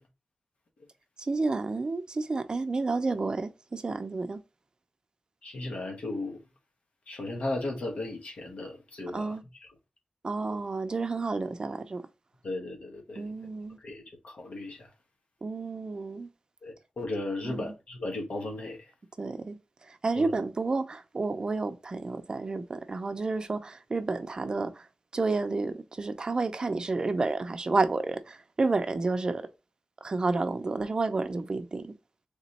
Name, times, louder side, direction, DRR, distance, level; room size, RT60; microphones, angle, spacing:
voice 1, 1.2-4.4 9.1-9.4 10.2-12.0 13.1-13.8 15.4-16.3 17.4-17.7 19.2-29.5 30.0-31.9, right 3 dB, 40° right, 0.5 m, -30 dB
voice 2, 5.4-6.4 7.1-9.3 12.4-13.2 13.8-14.8 16.6-18.8 20.2-20.3, left 2 dB, 75° left, 1.2 m, -35 dB
3.6 x 3.0 x 4.1 m
wide cardioid pair, 120°, 2 cm